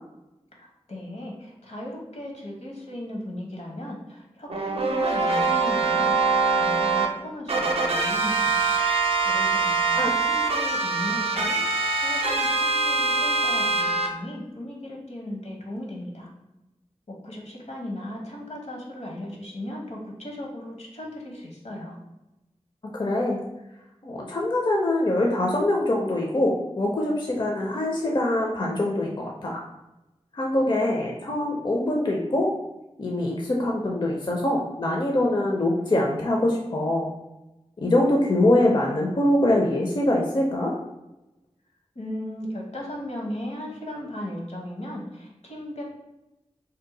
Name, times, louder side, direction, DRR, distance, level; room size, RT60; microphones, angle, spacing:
voice 1, 0.5-6.2 6.5-8.6 9.2-11.6 12.0-16.3 17.1-22.0 41.9-45.8, left 1 dB, 75° left, -1 dB, 0.8 m, -36 dB
sound 1, 4.5-7.1 7.5-14.1, right 4 dB, 55° right, 0.5 m, -23 dB
voice 2, 22.9-23.4 24.0-29.6 30.3-32.5 33.0-37.1 37.8-40.7, left 1 dB, 40° left, -1 dB, 0.5 m, -23 dB
2.7 x 2.1 x 3.9 m, 0.97 s
wide cardioid pair, 50°, 12 cm